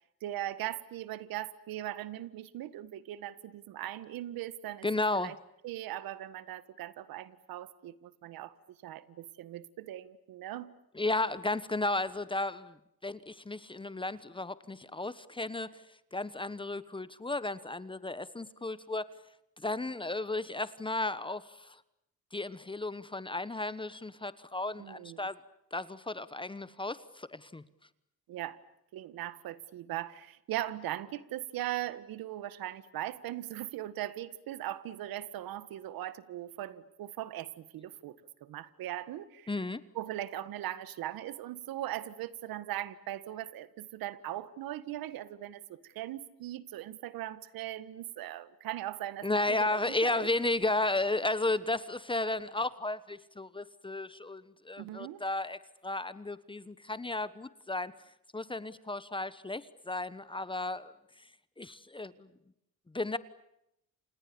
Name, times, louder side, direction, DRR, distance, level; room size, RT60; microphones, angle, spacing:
voice 1, 0.2-4.9 5.1-5.4 5.6-8.6 8.8-10.7 24.8-25.3 28.3-28.6 28.9-39.5 39.9-50.3 54.8-55.2, right 13 dB, 80° right, 16 dB, 1.7 m, -39 dB
voice 2, 4.8-5.3 10.9-12.8 13.0-15.8 16.1-19.1 19.6-21.8 22.3-25.4 25.7-27.6 39.5-39.8 49.2-57.9 58.3-60.9 61.6-62.3 62.9-63.2, left 2 dB, 15° left, 16 dB, 1.2 m, -34 dB
29.5 x 28.5 x 7.0 m, 0.82 s
cardioid pair, 110°, 35 cm